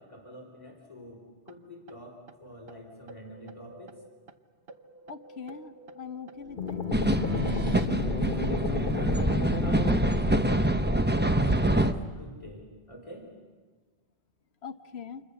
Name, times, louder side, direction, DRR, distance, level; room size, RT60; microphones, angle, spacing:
voice 1, 0.0-4.0 7.7-13.3, equal, 30° left, 0 dB, 4.8 m, -47 dB
sound 1, 1.5-1.6 1.9-2.0 2.3-2.4 2.7-2.8 3.1-4.4 4.7-7.9, right 4 dB, 65° right, 1.3 m, -44 dB
voice 2, 5.1-6.8 14.6-15.2, left 6 dB, 70° left, 11 dB, 1.2 m, -42 dB
sound 2, 6.6-10.9, left 5 dB, 50° left, 1.4 m, -33 dB
sound 3, 6.9-11.9, right 1 dB, 10° right, 0.9 m, -25 dB
29.5 x 27.5 x 7.0 m, 1.4 s
omnidirectional pair, 1.1 m